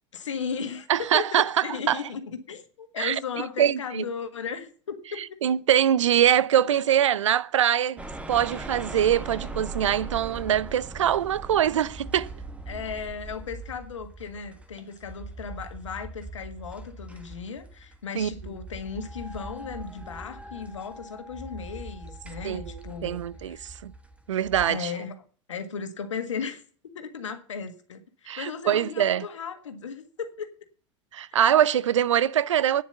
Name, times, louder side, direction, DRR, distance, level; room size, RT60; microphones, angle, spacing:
voice 1, 0.1-5.4 6.5-6.6 12.7-23.2 23.6-23.7 24.7-25.2 25.5-26.6 27.0-30.5 31.3-31.4, left 6 dB, 80° left, 1.6 m, -36 dB
voice 2, 0.9-2.0 3.0-3.2 3.6-4.1 5.2-8.0 8.3-12.3 18.1-18.3 22.4-23.9 24.3-24.9 28.3-29.2 31.1-32.8, right 10 dB, 80° right, 0.6 m, -23 dB
sound 1, 8.0-24.6, right 2 dB, 10° right, 1.6 m, -41 dB
9.5 x 7.2 x 7.0 m
figure-of-eight pair, 80°, 16 cm